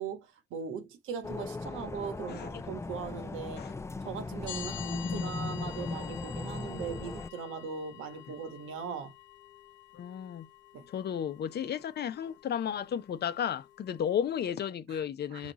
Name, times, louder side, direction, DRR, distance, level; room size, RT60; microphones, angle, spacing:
voice 1, 0.0-3.7 4.0-9.1 10.7-10.9 14.9-15.0 15.3-15.5, right 6 dB, 90° right, 1.2 m, -40 dB
sound 1, 1.2-7.3, left 3 dB, 15° left, 0.3 m, -38 dB
sound 2, 4.5-14.5, left 12 dB, 75° left, 1.2 m, -49 dB
voice 2, 5.0-5.4 9.9-10.5 10.9-15.5, left 8 dB, 55° left, 0.7 m, -33 dB
5.2 x 2.4 x 3.9 m
cardioid pair, 90°, 20 cm